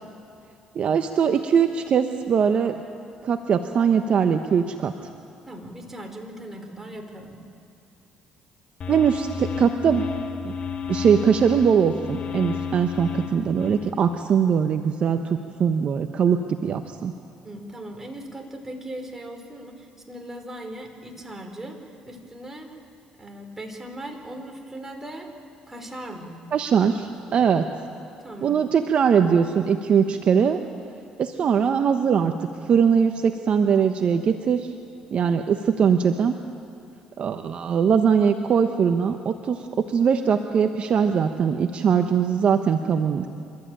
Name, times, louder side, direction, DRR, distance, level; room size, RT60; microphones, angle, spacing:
voice 1, 0.7-2.8 3.2-4.9 8.9-10.0 10.4-10.5 10.9-17.1 26.5-27.0 27.3-27.6 28.4-30.6 31.2-32.3 32.7-34.7 35.1-36.3 37.2-43.3, right 7 dB, 55° right, 7 dB, 1.1 m, -21 dB
voice 2, 5.5-7.4 17.4-21.8 22.1-22.7 23.2-25.3 25.7-26.4 27.3-27.5 28.2-28.6, right 1 dB, 15° right, 3 dB, 4.3 m, -38 dB
sound 1, 8.8-13.9, left 6 dB, 50° left, 1.6 m, -32 dB
27.5 x 13.5 x 9.0 m, 2.6 s
supercardioid pair, 75°, 2 cm